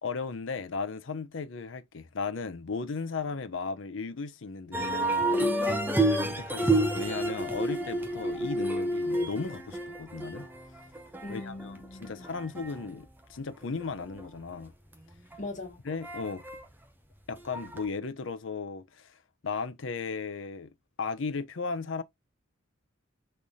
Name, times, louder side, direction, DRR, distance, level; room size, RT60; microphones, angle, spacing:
voice 1, 0.0-5.5 6.1-10.5 11.3-14.7 15.8-16.4 17.3-19.2 19.4-20.7 21.0-22.0, left 4 dB, 70° left, 0.6 m, -36 dB
sound 1, 4.7-13.4 13.8-14.3 14.9-15.7 16.0-16.6 17.3-17.9, right 1 dB, 10° right, 0.8 m, -30 dB
voice 2, 5.3-6.4 11.2-12.3 15.4-15.8, left 1 dB, 40° left, 1.7 m, -40 dB
4.1 x 3.3 x 3.5 m
head